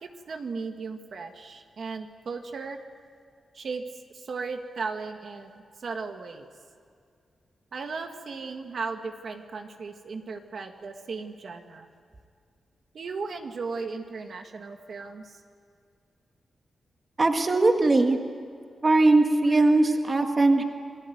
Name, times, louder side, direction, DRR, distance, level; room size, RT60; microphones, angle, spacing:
voice 1, 0.0-2.8 3.5-3.8 4.1-6.5 7.7-11.9 12.9-15.4, right 4 dB, 55° right, 5 dB, 1.8 m, -36 dB
voice 2, 17.2-18.2 18.8-20.6, right 2 dB, 25° right, 4 dB, 1.8 m, -20 dB
29.5 x 21.5 x 9.4 m, 2.3 s
wide cardioid pair, 160°, 0 cm